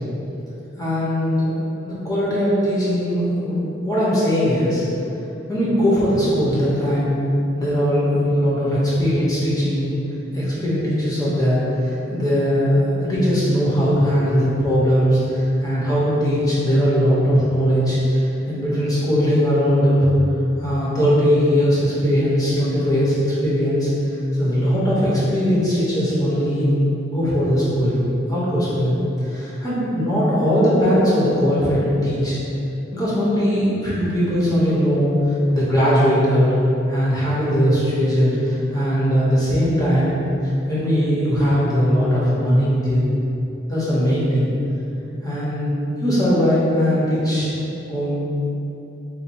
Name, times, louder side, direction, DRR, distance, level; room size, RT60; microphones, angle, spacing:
voice 1, 0.8-1.5 1.8-4.8 5.5-7.1 7.5-9.9 10.3-20.1 20.6-23.9 24.4-29.0 29.3-32.4 32.9-36.5 36.9-40.1 40.4-43.0 43.7-44.5 45.2-47.5 47.9-48.3, equal, 20° left, -9 dB, 1.0 m, -19 dB
4.1 x 2.2 x 4.5 m, 3.0 s
head